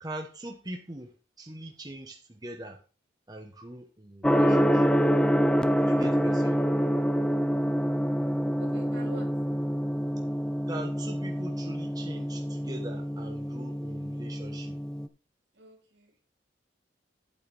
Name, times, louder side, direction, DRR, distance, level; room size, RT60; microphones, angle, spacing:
voice 1, 0.0-1.1 1.4-2.8 3.3-4.9 5.9-6.6 10.7-14.8, right 1 dB, 20° right, 3 dB, 0.9 m, -42 dB
Gong, 4.2-15.1, equal, 5° left, 0.4 m, -26 dB
voice 2, 8.6-9.3 15.5-16.1, right 1 dB, 70° right, 1 dB, 3.4 m, -46 dB
8.8 x 8.6 x 3.3 m, 0.37 s
head